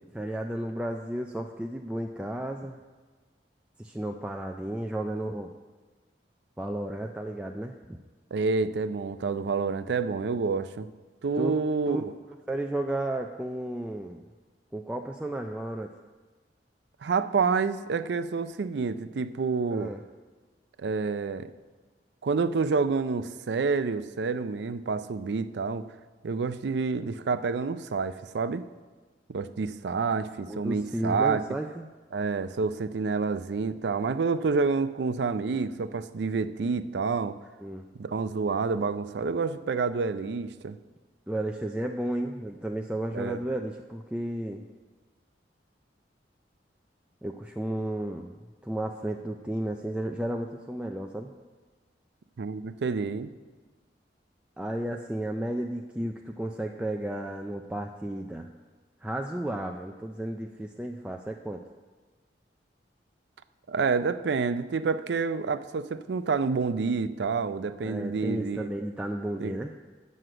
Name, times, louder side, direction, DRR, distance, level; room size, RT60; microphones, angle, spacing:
voice 1, 0.1-2.8 3.8-5.5 6.6-8.0 11.3-11.6 11.9-12.0 12.5-14.2 14.7-15.9 19.7-20.0 30.5-31.9 37.6-37.8 41.3-44.6 47.2-51.3 54.6-58.5 59.0-61.6 67.8-69.7, right 1 dB, 5° right, 2 dB, 0.3 m, -33 dB
voice 2, 8.3-10.9 11.2-12.1 17.0-19.9 20.8-21.5 22.2-25.8 26.2-28.6 29.3-31.4 32.1-37.4 38.0-40.8 43.1-43.4 52.4-53.3 63.7-68.7 69.4-69.5, right 4 dB, 70° right, 13 dB, 0.4 m, -28 dB
7.6 x 6.3 x 7.7 m, 1.3 s
head